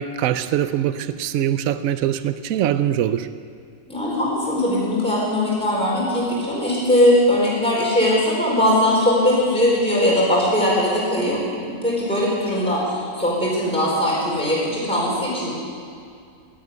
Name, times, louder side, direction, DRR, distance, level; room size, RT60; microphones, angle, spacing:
voice 1, 0.0-3.3, right 10 dB, 75° right, 12 dB, 1.1 m, -22 dB
voice 2, 3.9-15.5, left 1 dB, 5° left, -7 dB, 4.6 m, -20 dB
12.5 x 11.5 x 9.5 m, 2.3 s
omnidirectional pair, 1.4 m